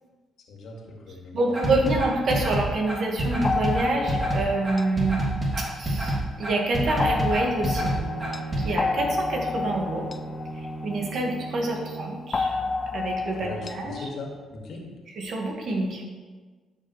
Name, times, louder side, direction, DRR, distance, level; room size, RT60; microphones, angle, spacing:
voice 1, 0.5-1.4 13.4-14.9, left 3 dB, 70° left, -1 dB, 2.2 m, -38 dB
voice 2, 1.3-5.3 5.6-8.0 8.6-10.1 10.5-12.6 12.9-14.1 15.1-16.0, right 2 dB, 60° right, 0 dB, 1.9 m, -27 dB
sound 1, 1.5-8.6, right 1 dB, 35° right, 2.9 m, -27 dB
sound 2, 3.4-6.2 7.0-11.5 12.3-14.1, left 4 dB, 35° left, 0.4 m, -30 dB
Bowed string instrument, 7.5-12.3, right 2 dB, 15° right, 2.0 m, -38 dB
12.5 x 6.8 x 3.3 m, 1.4 s
cardioid pair, 90°, 0 cm